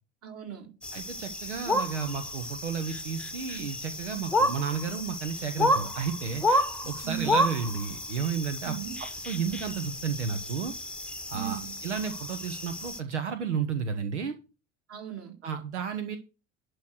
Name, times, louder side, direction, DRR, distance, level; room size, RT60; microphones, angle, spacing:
voice 1, 0.2-0.7 7.0-7.5 8.6-9.0 11.3-11.7 14.9-15.4, right 11 dB, 40° right, 2.8 m, -38 dB
sound 1, 0.8-13.0, left 1 dB, 5° left, 1.0 m, -31 dB
voice 2, 0.9-8.7 9.3-10.7 11.3-14.3 15.4-16.2, right 6 dB, 80° right, 0.9 m, -32 dB
11.5 x 4.7 x 6.3 m
figure-of-eight pair, 65°, 35 cm